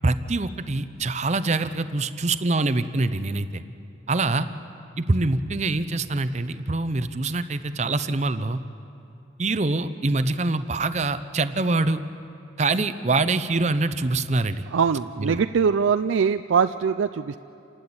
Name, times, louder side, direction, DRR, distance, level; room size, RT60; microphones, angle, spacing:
voice 1, 0.0-3.6 4.1-4.5 5.0-8.6 9.4-12.0 12.6-14.7 15.2-15.4, right 2 dB, 35° right, 11 dB, 0.6 m, -24 dB
voice 2, 14.7-17.4, right 6 dB, 80° right, 11 dB, 0.4 m, -22 dB
28.0 x 12.0 x 8.7 m, 2.7 s
head